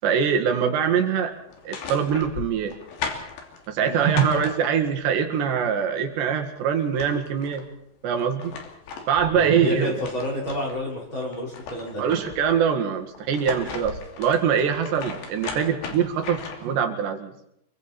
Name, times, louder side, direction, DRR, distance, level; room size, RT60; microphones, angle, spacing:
voice 1, 0.0-1.3 1.7-2.7 3.7-7.6 8.0-8.5 9.1-9.9 12.0-17.5, right 7 dB, 80° right, 5 dB, 4.1 m, -23 dB
sound 1, 1.5-5.0 6.5-6.6 6.8-7.7 8.2-10.8 11.2-12.6 13.2-16.8, left 5 dB, 75° left, 4.8 m, -37 dB
voice 2, 9.3-12.1, left 1 dB, 30° left, -2 dB, 4.9 m, -30 dB
27.5 x 23.5 x 4.3 m, 0.76 s
omnidirectional pair, 4.9 m